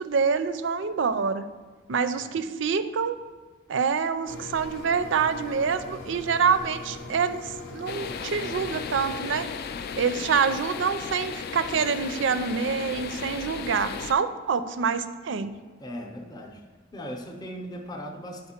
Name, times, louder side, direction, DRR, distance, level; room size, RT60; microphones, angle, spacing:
voice 1, 0.0-1.5 1.9-3.2 3.7-9.5 10.0-15.6, right 6 dB, 65° right, 11 dB, 0.4 m, -26 dB
voice 2, 2.1-2.4 15.8-16.7 16.9-18.5, equal, 20° left, 2 dB, 0.6 m, -38 dB
sound 1, 4.3-9.4, left 2 dB, 80° left, 0.7 m, -41 dB
sound 2, 7.9-14.1, left 6 dB, 55° left, 0.3 m, -35 dB
9.9 x 4.3 x 4.3 m, 1.4 s
head